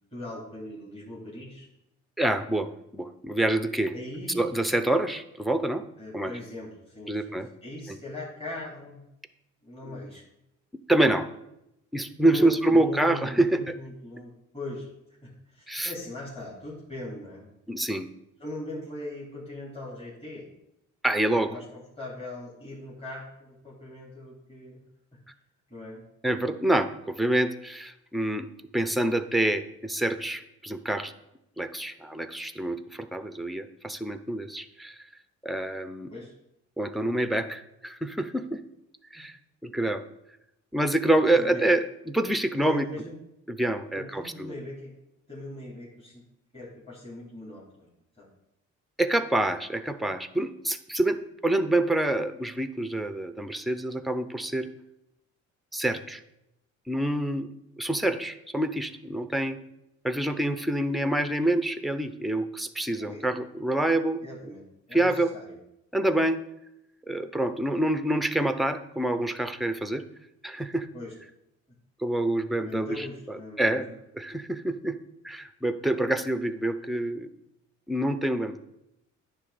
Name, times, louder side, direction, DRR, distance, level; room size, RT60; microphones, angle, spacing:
voice 1, 0.1-1.7 3.9-4.5 6.0-9.0 9.6-10.2 12.2-14.9 15.2-17.5 18.4-20.5 21.4-24.8 25.7-26.0 36.1-36.3 41.3-41.8 42.6-43.1 43.9-44.9 45.3-46.2 46.5-47.9 48.2-48.3 62.9-63.3 64.2-65.6 70.9-71.1 72.6-73.9, left 1 dB, 20° left, -6 dB, 3.1 m, -40 dB
voice 2, 2.2-3.9 4.4-5.8 6.1-6.3 7.1-7.5 9.9-10.0 10.9-11.3 11.9-13.8 15.7-15.9 17.7-18.1 21.0-21.5 26.2-28.5 28.7-31.1 31.6-34.9 35.4-36.1 36.8-38.6 39.1-39.3 39.6-40.0 40.7-42.9 43.5-44.5 49.0-54.7 55.7-56.2 56.9-57.5 57.8-59.6 60.0-64.2 64.9-65.3 65.9-66.4 67.1-70.0 70.4-70.9 72.0-73.8 74.2-75.0 75.2-77.3 77.9-78.6, right 1 dB, ahead, 10 dB, 0.6 m, -27 dB
10.0 x 3.3 x 6.9 m, 0.85 s
cardioid pair, 90°, 30 cm